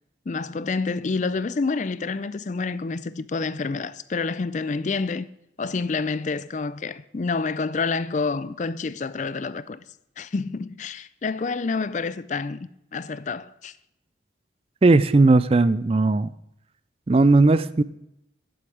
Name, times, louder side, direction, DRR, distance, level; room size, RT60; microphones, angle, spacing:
voice 1, 0.3-5.3 5.6-9.8 10.2-13.7, left 4 dB, 40° left, 0.4 m, -28 dB
voice 2, 14.8-16.3 17.1-17.8, right 3 dB, 30° right, 0.4 m, -17 dB
11.0 x 8.0 x 6.2 m
head